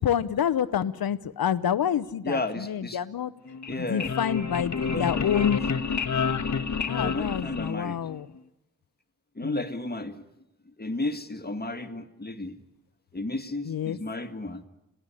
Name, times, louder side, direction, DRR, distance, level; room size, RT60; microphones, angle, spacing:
voice 1, 0.0-3.3 3.8-5.6 6.9-8.3 9.4-9.7 13.6-14.0, left 9 dB, 85° left, 15 dB, 0.8 m, -28 dB
voice 2, 2.2-3.0 3.7-4.1 4.8-5.5 7.0-8.0 9.4-10.2 10.8-12.5 13.1-14.6, left 2 dB, 25° left, 8 dB, 1.9 m, -33 dB
sound 1, 3.5-8.2, left 5 dB, 55° left, 1.3 m, -29 dB
27.0 x 17.0 x 9.9 m, 0.92 s
cardioid pair, 50°, 35 cm